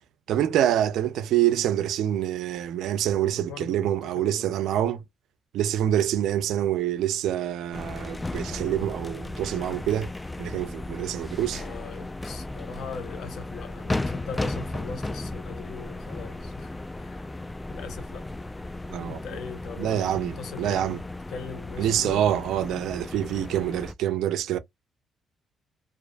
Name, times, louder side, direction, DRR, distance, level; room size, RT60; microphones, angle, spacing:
voice 1, 0.3-5.0 5.5-10.1 10.4-11.6 18.9-19.2 19.8-21.0 21.8-24.6, right 11 dB, 80° right, 0.4 m, -26 dB
voice 2, 3.2-4.5 11.5-17.2 17.7-18.3 19.1-22.2, left 6 dB, 75° left, 0.7 m, -41 dB
sound 1, 7.7-23.9, left 2 dB, 15° left, 0.3 m, -35 dB
2.4 x 2.4 x 2.2 m
cardioid pair, 90°, 0 cm